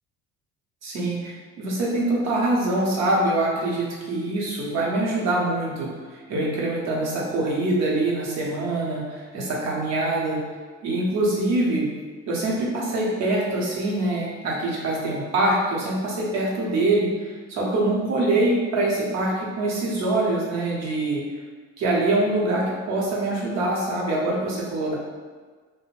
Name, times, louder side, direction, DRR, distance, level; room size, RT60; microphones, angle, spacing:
voice 1, 0.8-10.4 10.8-11.9 12.3-21.2 21.8-24.9, right 2 dB, 60° right, -4 dB, 0.8 m, -24 dB
2.5 x 2.1 x 3.1 m, 1.5 s
cardioid pair, 110°, 30 cm